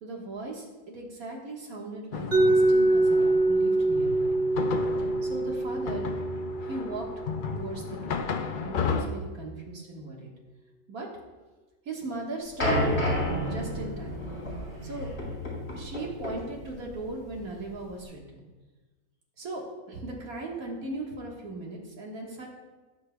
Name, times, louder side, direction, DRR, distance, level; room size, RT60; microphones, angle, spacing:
voice 1, 0.0-4.3 5.2-6.1 6.6-7.1 7.5-10.3 10.9-11.1 11.9-13.1 13.5-14.2 14.8-15.1 15.7-18.2 19.4-22.5, right 2 dB, 65° right, -1 dB, 2.0 m, -38 dB
sound 1, 2.1-9.1, left 6 dB, 85° left, 0.4 m, -34 dB
Mallet percussion, 2.3-8.1, right 2 dB, 40° right, 1.4 m, -25 dB
sound 2, 12.6-18.0, equal, 50° left, 3.2 m, -31 dB
17.5 x 6.4 x 2.3 m, 1.2 s
omnidirectional pair, 1.6 m